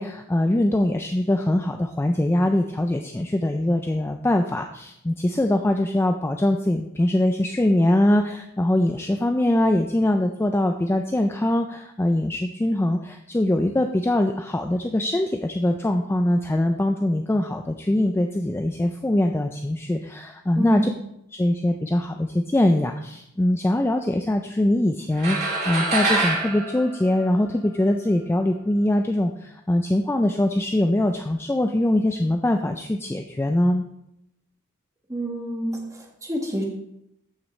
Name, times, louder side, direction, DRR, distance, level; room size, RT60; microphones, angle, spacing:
voice 1, 0.0-20.8 21.3-33.8, left 1 dB, 10° left, 5 dB, 0.3 m, -22 dB
voice 2, 20.6-20.9 35.1-36.6, equal, 15° right, 0 dB, 1.5 m, -28 dB
sound 1, 25.2-27.8, right 2 dB, 45° right, 3.2 m, -25 dB
14.0 x 6.0 x 3.1 m, 0.79 s
head